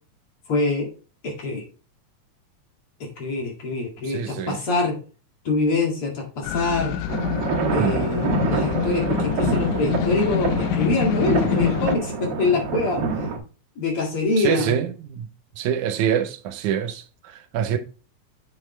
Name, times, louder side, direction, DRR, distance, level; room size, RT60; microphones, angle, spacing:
voice 1, 0.5-0.9 1.2-1.6 3.0-5.0 5.4-7.0 7.7-13.0 13.8-14.8, left 3 dB, 50° left, 2.9 m, -24 dB
voice 2, 4.0-4.6 7.8-8.0 14.4-15.3 15.6-17.8, right 9 dB, 85° right, 2.3 m, -25 dB
sound 1, 6.4-12.0, left 10 dB, 90° left, 2.1 m, -26 dB
sound 2, 7.1-13.4, right 4 dB, 55° right, 2.2 m, -26 dB
7.6 x 5.7 x 3.2 m
omnidirectional pair, 3.4 m